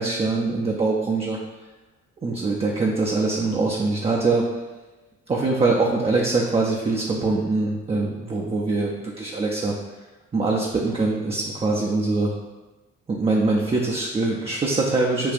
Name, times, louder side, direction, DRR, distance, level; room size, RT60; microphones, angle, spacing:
voice 1, 0.0-1.4 2.2-4.5 5.3-9.7 10.3-12.3 13.1-15.3, right 3 dB, 15° right, -2 dB, 0.4 m, -23 dB
5.0 x 2.4 x 2.4 m, 1.2 s
hypercardioid pair, 45°, 37 cm